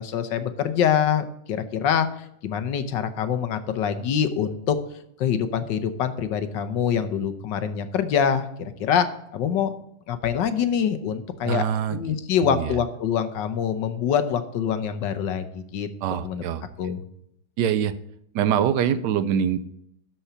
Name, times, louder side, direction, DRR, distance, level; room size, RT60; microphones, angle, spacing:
voice 1, 0.0-2.1 2.4-4.8 5.2-8.5 8.8-9.7 10.1-11.6 11.9-15.9 16.2-16.4 16.8-17.0, left 8 dB, 80° left, 10 dB, 1.5 m, -25 dB
voice 2, 11.4-12.2 12.4-12.8 16.0-16.6 17.6-17.9 18.3-19.6, right 9 dB, 75° right, 14 dB, 1.2 m, -24 dB
12.5 x 4.4 x 6.9 m, 0.76 s
omnidirectional pair, 2.0 m